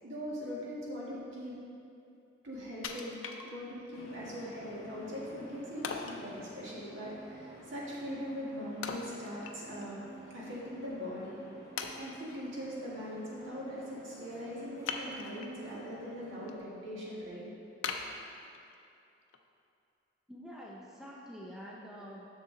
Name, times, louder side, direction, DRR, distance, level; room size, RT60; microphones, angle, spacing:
voice 1, 0.0-1.6 2.4-3.1 3.4-10.0 10.3-11.4 12.0-17.5, equal, 80° right, -6 dB, 1.8 m, -41 dB
Wood, 2.8-3.9 4.4-4.5 5.8-6.2 8.8-9.9 10.3-10.4 11.1-11.2 11.8-12.4 14.8-15.6 16.1-16.5 16.9-17.0 17.8-18.8 19.3-19.4, left 5 dB, 80° left, 0.5 m, -40 dB
sound 1, 3.9-16.6, right 2 dB, 35° left, 1.4 m, -50 dB
voice 2, 20.3-22.3, equal, 5° right, -4 dB, 0.6 m, -47 dB
6.7 x 6.5 x 3.8 m, 2.6 s
head